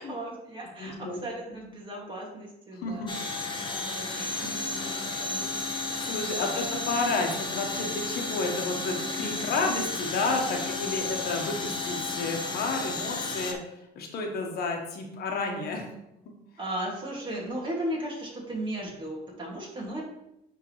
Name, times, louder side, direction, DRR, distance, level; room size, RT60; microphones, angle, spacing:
voice 1, 0.0-5.6 6.4-6.5 16.6-20.0, right 1 dB, 30° right, -2 dB, 2.1 m, -36 dB
voice 2, 0.8-1.2 1.5-1.6 2.7-3.1 4.2-4.3 6.0-13.6 13.9-15.9 16.2-16.3, left 3 dB, 70° left, 2 dB, 1.2 m, -31 dB
sound 1, 3.1-13.5, left 3 dB, 25° left, 0.9 m, -33 dB
9.6 x 3.7 x 3.1 m, 0.83 s
cardioid pair, 110°, 17 cm